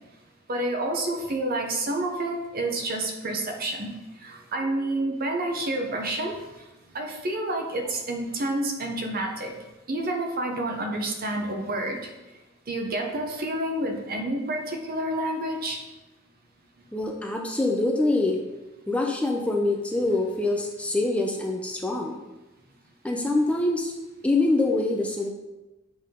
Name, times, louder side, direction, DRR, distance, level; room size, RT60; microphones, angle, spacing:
voice 1, 0.5-3.9 4.2-6.4 6.9-9.5 9.9-12.0 12.7-15.8, right 1 dB, 45° right, 3 dB, 0.8 m, -29 dB
voice 2, 16.9-18.4 18.9-22.2 23.0-23.9 24.2-25.3, left 2 dB, 5° left, 0 dB, 0.5 m, -25 dB
7.7 x 3.6 x 3.6 m, 1.1 s
head